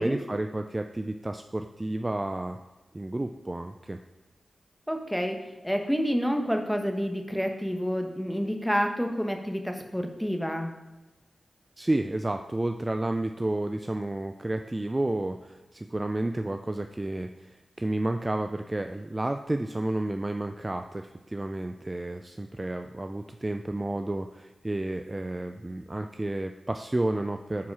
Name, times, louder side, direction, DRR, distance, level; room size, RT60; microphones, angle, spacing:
voice 1, 0.0-2.6 2.9-4.0 11.8-27.7, right 1 dB, 25° right, 6 dB, 0.4 m, -31 dB
voice 2, 4.9-5.4 5.6-10.7, equal, ahead, 4 dB, 1.2 m, -28 dB
9.4 x 4.7 x 4.8 m, 1.1 s
cardioid pair, 55°, 0 cm